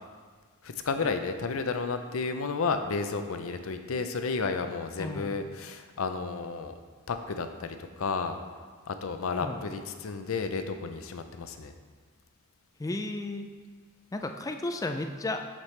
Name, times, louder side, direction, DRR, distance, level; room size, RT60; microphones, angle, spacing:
voice 1, 0.6-6.8 7.1-8.4 8.9-11.7, left 4 dB, 75° left, 8 dB, 0.5 m, -32 dB
voice 2, 5.0-5.4 9.4-9.6 12.8-13.5 14.1-15.4, left 2 dB, 15° left, 6 dB, 0.3 m, -34 dB
7.2 x 6.7 x 3.2 m, 1.5 s
head